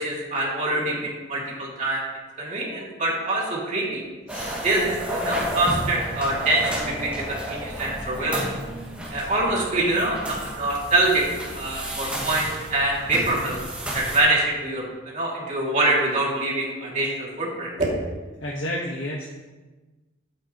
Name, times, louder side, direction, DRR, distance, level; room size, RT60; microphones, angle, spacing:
voice 1, 0.0-2.0 2.4-4.0 4.6-8.5 9.1-11.2 11.5-13.6 13.9-17.9, right 2 dB, 40° right, -4 dB, 2.6 m, -25 dB
voice 2, 4.3-4.6 18.4-19.3, left 1 dB, 85° left, -4 dB, 1.5 m, -31 dB
sound 1, 4.3-14.2, right 1 dB, 5° right, 1.9 m, -32 dB
12.0 x 8.5 x 3.1 m, 1.2 s
head